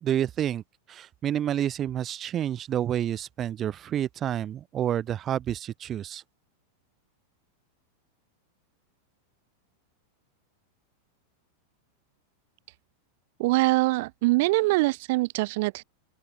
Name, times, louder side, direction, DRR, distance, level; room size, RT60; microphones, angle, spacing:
voice 1, 0.0-0.6 0.9-6.2, right 10 dB, 30° right, 1.4 m, -29 dB
voice 2, 13.4-15.8, right 22 dB, 50° right, 1.6 m, -23 dB
open air
figure-of-eight pair, 90°, 0 cm